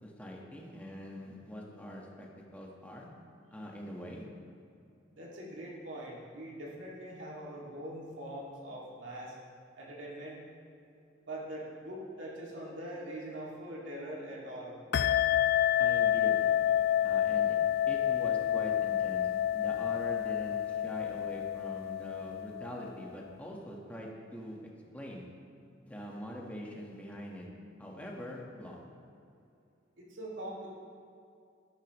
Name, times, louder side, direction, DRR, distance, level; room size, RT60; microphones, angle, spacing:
voice 1, 0.0-3.1 3.5-4.2 15.8-16.5 17.0-17.6 17.9-24.6 24.9-25.2 25.8-27.5 27.8-28.8, equal, 10° left, -2 dB, 1.4 m, -43 dB
voice 2, 5.1-9.4 9.8-10.4 11.2-14.8 30.0-30.7, right 1 dB, 85° right, -4 dB, 2.3 m, -42 dB
sound 1, 14.9-23.1, left 10 dB, 55° left, 0.4 m, -29 dB
13.0 x 11.5 x 3.1 m, 2.5 s
head